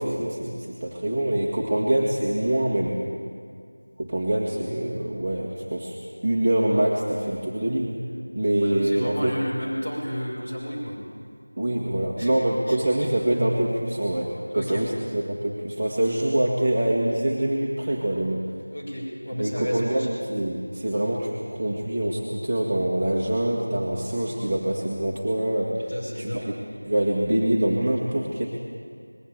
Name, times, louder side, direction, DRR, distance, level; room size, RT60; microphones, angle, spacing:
voice 1, 0.0-3.0 4.0-6.0 6.2-7.9 8.3-9.3 11.6-18.4 19.4-26.3 26.8-28.5, right 1 dB, 15° right, -4 dB, 1.5 m, -25 dB
voice 2, 8.6-11.0 12.2-12.3 12.7-12.8 14.5-14.9 18.7-20.1 25.9-26.5, equal, 30° left, -4 dB, 5.8 m, -32 dB
21.0 x 16.5 x 8.4 m, 2.1 s
figure-of-eight pair, 175°, 0 cm